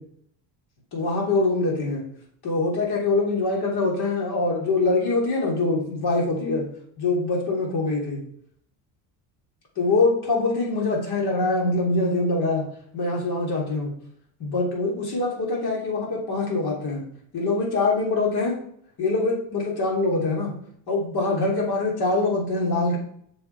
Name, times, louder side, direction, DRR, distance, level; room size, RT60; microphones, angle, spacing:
voice 1, 0.9-2.0 2.4-6.7 7.0-8.2 9.8-12.6 12.9-13.9 14.4-17.0 17.3-18.6 19.0-20.5 20.9-23.0, left 3 dB, 55° left, -1 dB, 3.0 m, -24 dB
6.9 x 5.2 x 4.5 m, 0.65 s
supercardioid pair, 80°, 46 cm